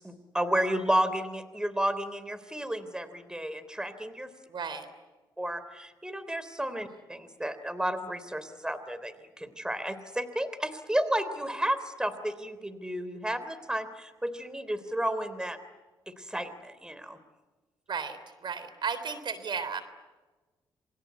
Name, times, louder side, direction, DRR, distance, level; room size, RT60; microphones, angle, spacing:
voice 1, 0.0-4.3 5.4-15.6 16.1-17.2, right 1 dB, 10° right, 13 dB, 3.5 m, -32 dB
voice 2, 4.5-4.9 17.9-19.8, right 6 dB, 55° right, 12 dB, 3.6 m, -34 dB
28.0 x 24.0 x 8.3 m, 1.2 s
supercardioid pair, 60°, 9 cm